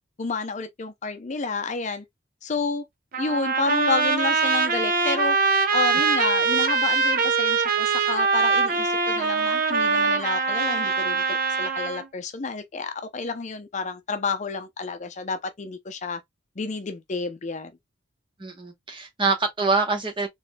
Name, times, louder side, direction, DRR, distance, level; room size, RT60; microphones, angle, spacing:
voice 1, 0.2-2.0 2.4-2.8 3.2-5.4 5.7-16.2 16.6-17.7, left 4 dB, 40° left, 0.5 m, -30 dB
Trumpet, 3.1-12.1, right 4 dB, 50° right, 0.7 m, -23 dB
voice 2, 18.4-20.3, right 4 dB, 25° right, 1.0 m, -25 dB
4.2 x 3.1 x 2.2 m
head